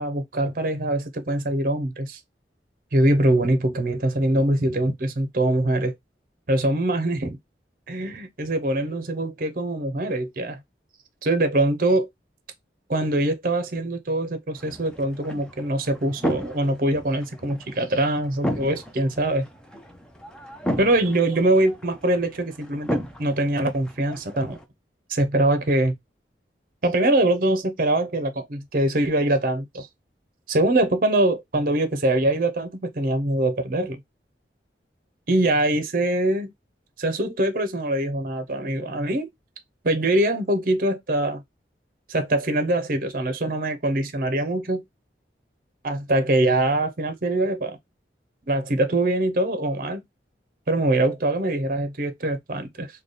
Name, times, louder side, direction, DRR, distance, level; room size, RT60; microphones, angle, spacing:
voice 1, 0.0-2.2 2.9-5.9 6.5-7.4 7.9-10.6 11.2-12.1 12.9-19.5 20.8-24.6 25.1-25.9 26.8-29.9 30.5-34.0 35.3-36.5 37.0-39.3 39.8-41.4 42.1-44.8 45.8-47.8 48.5-50.0 50.7-52.9, right 1 dB, 50° right, 0.7 m, -23 dB
sound 1, 14.6-24.7, equal, 5° left, 0.5 m, -34 dB
3.3 x 2.2 x 3.9 m
head